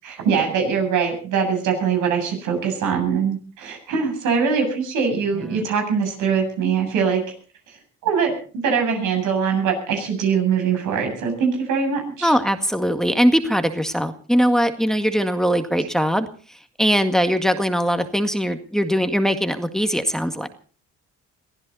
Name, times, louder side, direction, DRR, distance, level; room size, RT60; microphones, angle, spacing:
voice 1, 0.0-7.2 8.0-12.3, right 6 dB, 90° right, 4 dB, 7.7 m, -22 dB
voice 2, 12.2-16.3 16.8-20.5, equal, ahead, 7 dB, 1.8 m, -21 dB
23.0 x 15.0 x 4.1 m, 0.40 s
cardioid pair, 90°, 30 cm